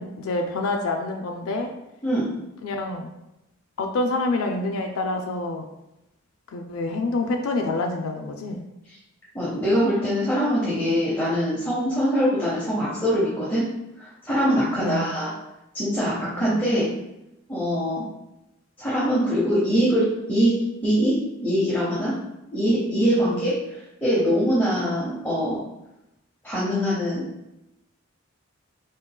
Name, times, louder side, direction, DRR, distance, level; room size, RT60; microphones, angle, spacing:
voice 1, 0.0-1.7 2.6-3.1 3.8-5.7 6.5-8.6 14.5-15.1 16.3-16.6 23.2-23.4, left 2 dB, 85° left, 3 dB, 0.4 m, -27 dB
voice 2, 9.3-13.6 14.0-15.3 15.7-16.8 17.5-18.0 18.8-20.5 20.8-21.2 21.4-22.1 22.5-25.6 26.4-27.2, equal, 10° left, -8 dB, 0.7 m, -23 dB
3.8 x 3.7 x 2.2 m, 0.90 s
head